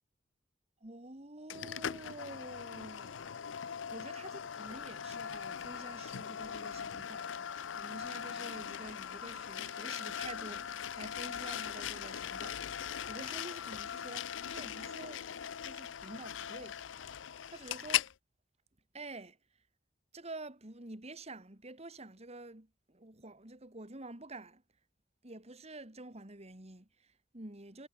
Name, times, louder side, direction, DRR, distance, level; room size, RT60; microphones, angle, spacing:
voice 1, 0.8-15.3 15.6-16.8 17.5-18.1 18.9-19.4 20.1-24.6 25.2-27.9, right 2 dB, 35° right, 2.7 m, -49 dB
sound 1, 1.5-18.1, left 9 dB, 85° left, 0.5 m, -40 dB
head